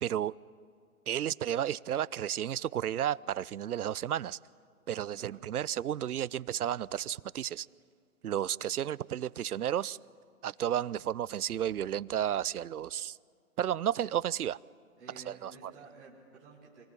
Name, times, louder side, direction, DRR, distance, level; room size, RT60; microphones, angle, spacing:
voice 1, 0.0-0.3 1.1-4.4 4.9-7.7 8.2-10.0 10.4-13.2 13.6-14.6 15.3-15.7, right 10 dB, 85° right, 21 dB, 0.6 m, -32 dB
voice 2, 15.0-16.8, right 3 dB, ahead, -9 dB, 0.6 m, -53 dB
25.5 x 19.5 x 9.8 m, 2.2 s
hypercardioid pair, 165°, 44 cm